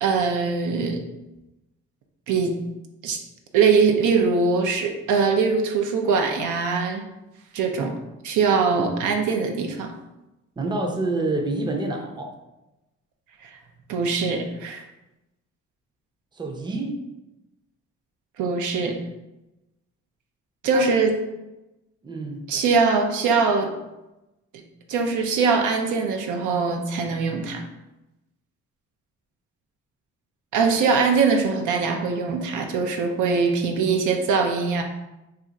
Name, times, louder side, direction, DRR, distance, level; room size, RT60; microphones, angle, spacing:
voice 1, 0.0-1.0 2.3-2.5 3.0-3.2 3.5-7.0 7.5-8.0 8.2-9.9 13.4-13.5 13.9-14.8 18.4-19.0 20.6-21.2 22.5-23.7 24.9-27.6 30.5-34.8, right 5 dB, 80° right, 3 dB, 0.5 m, -22 dB
voice 2, 10.6-12.3 16.3-17.0 20.7-20.9 22.0-22.4, right 2 dB, 15° right, 2 dB, 0.5 m, -27 dB
2.5 x 2.4 x 4.0 m, 0.97 s
cardioid pair, 90°, 30 cm